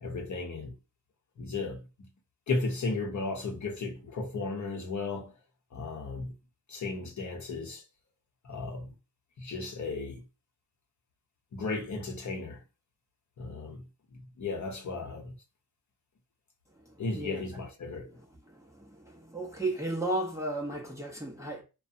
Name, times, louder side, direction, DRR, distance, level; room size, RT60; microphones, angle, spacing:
voice 1, 0.0-0.7 1.4-2.1 2.5-5.3 5.7-6.3 6.7-7.8 8.4-8.9 9.4-10.2 11.5-12.6 13.4-13.8 14.4-15.4 17.0-18.1, left 3 dB, 45° left, 0.8 m, -35 dB
voice 2, 16.8-17.6 17.9-18.1 18.5-21.6, right 2 dB, 5° right, 0.7 m, -35 dB
2.6 x 2.2 x 2.5 m
cardioid pair, 105°, 41 cm